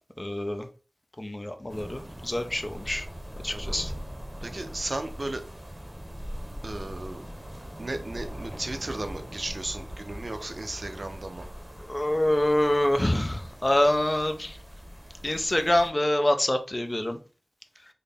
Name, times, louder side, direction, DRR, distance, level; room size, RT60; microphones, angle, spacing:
voice 1, 0.2-0.7 1.2-3.1 3.4-3.9 11.8-14.6 15.2-17.2, left 1 dB, 30° left, 6 dB, 0.5 m, -26 dB
sound 1, 1.7-15.9, equal, 25° right, 0.8 m, -41 dB
voice 2, 3.5-3.9 4.4-5.4 6.6-7.2 7.8-11.5, right 2 dB, 60° right, 6 dB, 0.6 m, -35 dB
4.0 x 2.1 x 3.4 m, 0.36 s
wide cardioid pair, 45°, 0 cm